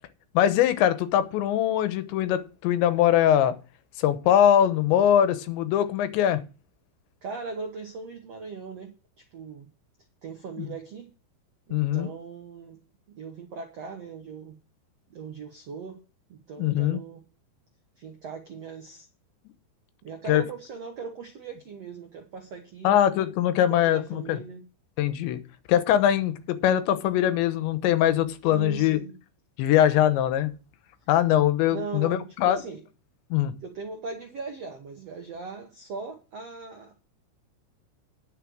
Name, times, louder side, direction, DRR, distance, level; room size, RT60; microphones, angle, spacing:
voice 1, 0.3-3.5 4.0-6.4 10.6-10.7 11.7-12.1 16.6-17.0 20.3-20.4 22.8-24.4 25.0-25.4 25.7-29.0 29.6-30.5 31.1-32.6 33.3-33.5, left 11 dB, 85° left, 3.3 m, -22 dB
voice 2, 7.2-9.7 10.2-11.1 11.7-12.8 13.2-14.6 15.1-16.0 16.3-17.2 18.0-19.1 20.0-23.0 23.7-24.6 28.5-29.1 31.7-32.8 33.6-37.0, right 5 dB, 70° right, 1.5 m, -39 dB
11.0 x 6.6 x 6.3 m
omnidirectional pair, 5.1 m